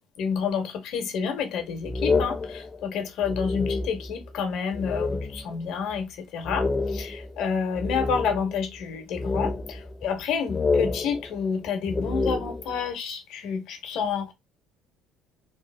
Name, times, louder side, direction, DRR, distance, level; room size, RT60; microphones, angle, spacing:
voice 1, 0.2-14.3, left 6 dB, 70° left, 0.9 m, -29 dB
sound 1, 1.8-4.3 4.7-5.6 5.9-6.0 6.4-8.7 9.1-10.2 10.5-12.9, left 3 dB, 25° left, 0.5 m, -29 dB
3.1 x 2.1 x 3.3 m
hypercardioid pair, 65°, 0 cm